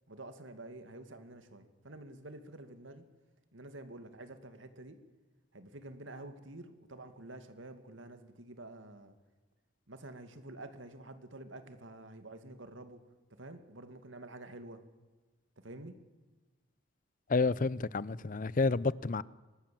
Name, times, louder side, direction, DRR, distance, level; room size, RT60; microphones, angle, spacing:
voice 1, 0.1-3.0 3.5-5.0 5.5-9.1 9.9-13.0 13.4-14.8 15.6-16.0, right 2 dB, 85° right, 2.5 m, -49 dB
voice 2, 17.3-19.2, left 3 dB, 45° left, 0.6 m, -30 dB
24.0 x 20.0 x 7.7 m
head